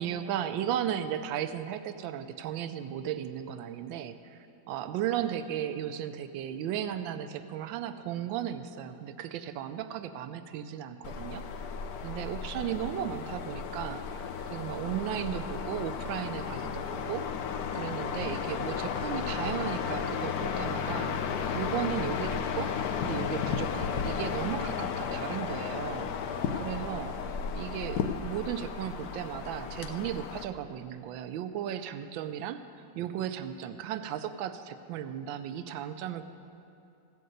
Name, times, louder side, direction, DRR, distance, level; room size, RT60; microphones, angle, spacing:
voice 1, 0.0-4.4 4.7-11.4 12.0-21.2 21.5-22.7 23.0-26.1 26.6-27.2 27.5-32.6 32.9-36.2, right 10 dB, 85° right, 10 dB, 1.4 m, -35 dB
sound 1, 11.0-30.4, left 6 dB, 65° left, 1.0 m, -34 dB
15.5 x 5.4 x 7.8 m, 2.6 s
omnidirectional pair, 2.1 m